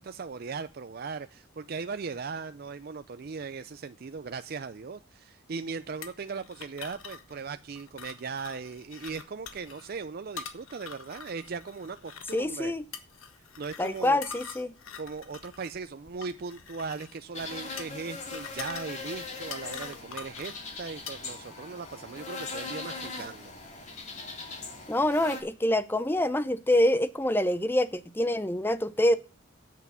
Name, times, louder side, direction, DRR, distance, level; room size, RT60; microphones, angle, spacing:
voice 1, 0.0-12.7 13.6-14.2 15.0-23.5, right 5 dB, 45° right, 0.4 m, -38 dB
sound 1, 6.0-21.4, left 7 dB, 80° left, 1.3 m, -45 dB
voice 2, 12.3-12.8 13.8-14.7 24.9-29.2, left 1 dB, 10° left, 0.5 m, -26 dB
sound 2, 17.3-25.4, left 3 dB, 35° left, 2.5 m, -40 dB
8.2 x 6.7 x 6.9 m
head